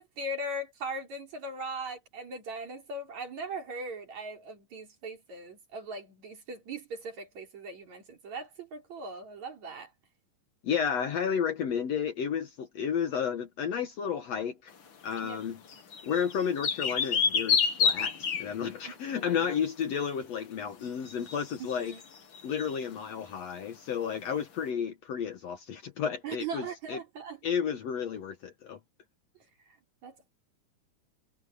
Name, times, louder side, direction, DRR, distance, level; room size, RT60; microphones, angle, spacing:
voice 1, 0.0-9.9 15.2-15.4 19.1-19.2 21.6-22.0 26.2-27.4 30.0-30.3, right 2 dB, 55° right, 5.5 m, -39 dB
voice 2, 10.6-14.7 15.0-15.6 16.0-21.9 22.4-27.0 27.4-28.8, left 7 dB, 60° left, 2.1 m, -32 dB
sound 1, 15.2-15.3 15.7-18.7 21.1-22.7, left 6 dB, 45° left, 1.9 m, -28 dB
omnidirectional pair, 3.9 m